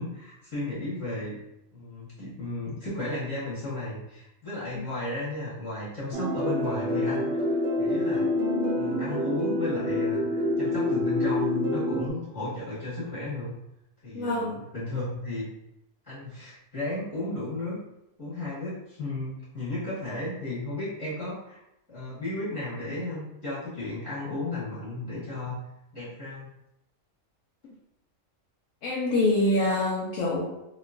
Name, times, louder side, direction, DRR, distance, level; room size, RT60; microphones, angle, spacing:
voice 1, 0.0-1.4 1.7-8.3 8.7-13.6 14.0-15.5 16.0-17.8 18.2-21.6 21.9-25.6 25.9-26.5, left 2 dB, 20° left, -10 dB, 1.3 m, -34 dB
sound 1, 6.1-12.1, left 1 dB, 65° right, 0.8 m, -27 dB
voice 2, 14.1-14.6 28.8-30.4, left 1 dB, 85° left, -5 dB, 1.1 m, -25 dB
3.1 x 2.9 x 2.5 m, 0.86 s
omnidirectional pair, 1.3 m